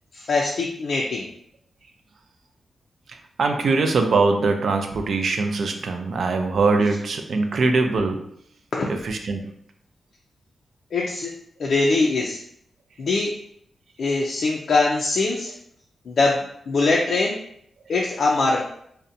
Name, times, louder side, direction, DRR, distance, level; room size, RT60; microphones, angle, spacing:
voice 1, 0.1-1.3 8.7-8.9 10.9-11.3 11.6-12.4 13.0-13.3 14.0-15.5 16.1-17.4 17.9-18.6, left 3 dB, 70° left, -2 dB, 0.3 m, -22 dB
voice 2, 3.1-8.2 9.0-9.4, right 3 dB, 65° right, 5 dB, 0.3 m, -22 dB
2.6 x 2.1 x 2.5 m, 0.69 s
cardioid pair, 95°, 0 cm